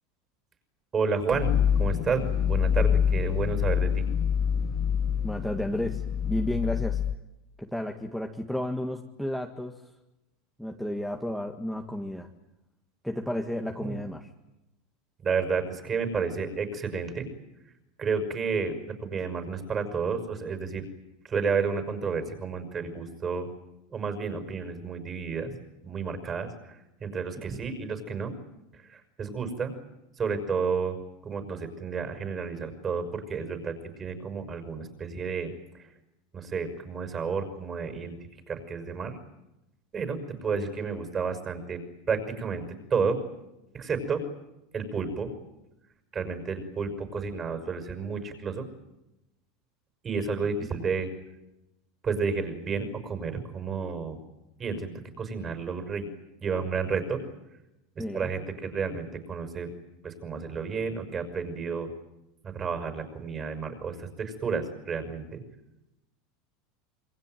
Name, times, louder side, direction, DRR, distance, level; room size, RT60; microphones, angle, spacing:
voice 1, 0.9-1.5 1.8-4.1 13.8-13.9 15.2-17.3 18.0-18.7 19.0-20.9 21.2-23.5 23.9-25.5 25.8-28.3 28.7-29.7 30.2-31.0 31.2-35.9 36.3-39.2 39.9-41.8 42.1-43.2 43.7-44.2 44.7-45.3 46.1-48.7 50.0-51.1 52.0-54.2 54.6-56.1 56.4-57.2 57.9-59.7 60.0-61.9 62.4-65.4, right 5 dB, 25° right, 8 dB, 6.0 m, -31 dB
sound 1, 1.3-7.2, left 8 dB, 45° left, 1.0 m, -26 dB
voice 2, 5.2-7.0 7.6-9.8 10.6-12.3 13.0-14.3 58.0-58.3, left 1 dB, ahead, 2 dB, 1.9 m, -32 dB
27.0 x 23.5 x 9.3 m, 0.94 s
supercardioid pair, 130°, 0 cm